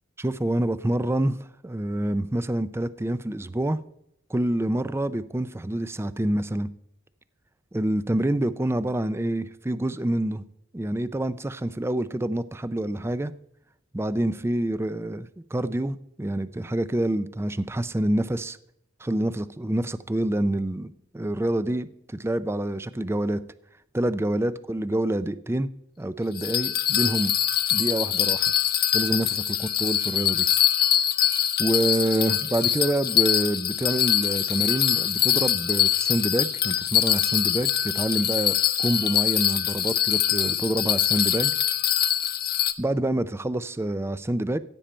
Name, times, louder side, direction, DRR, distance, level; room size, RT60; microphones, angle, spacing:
voice 1, 0.2-1.4 1.6-3.8 4.3-6.7 7.7-10.4 10.7-13.3 13.9-18.6 19.0-23.4 23.9-25.7 26.0-27.3 27.7-28.5 28.9-29.4 29.8-30.5 31.6-41.5 42.8-44.6, right 1 dB, 15° right, 0.4 m, -27 dB
Bell, 26.4-42.7, left 10 dB, 50° left, 0.8 m, -24 dB
15.5 x 8.8 x 4.4 m
head